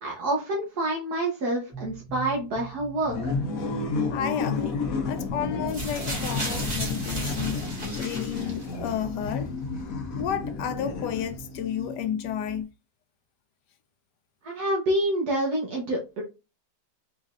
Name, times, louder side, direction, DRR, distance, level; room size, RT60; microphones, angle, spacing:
voice 1, 0.0-3.3 14.4-16.2, right 1 dB, 70° right, 1.6 m, -27 dB
sound 1, 1.7-12.6, right 2 dB, 40° left, 1.9 m, -42 dB
sound 2, 3.1-11.6, left 4 dB, 60° left, 1.4 m, -31 dB
voice 2, 4.1-9.5 10.1-12.7, left 9 dB, 85° left, 1.3 m, -32 dB
sound 3, 5.7-8.9 9.8-9.9, right 1 dB, 25° right, 1.8 m, -35 dB
5.3 x 3.9 x 2.5 m
omnidirectional pair, 1.8 m